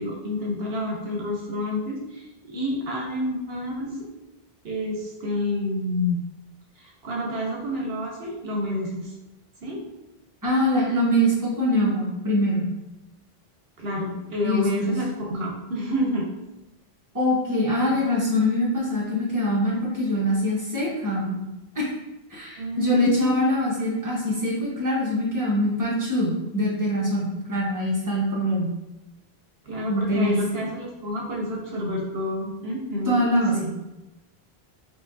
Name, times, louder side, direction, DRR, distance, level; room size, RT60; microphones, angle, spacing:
voice 1, 0.0-4.0 4.6-6.2 6.8-9.1 9.6-9.8 13.8-16.3 22.6-23.5 29.7-33.2 33.5-33.7, left 1 dB, 75° right, -1 dB, 1.0 m, -29 dB
voice 2, 10.4-12.7 14.4-14.9 17.1-21.4 21.7-21.9 22.3-28.7 29.9-30.4 33.0-33.7, equal, 20° right, -6 dB, 1.3 m, -23 dB
5.9 x 3.0 x 2.6 m, 0.99 s
omnidirectional pair, 1.0 m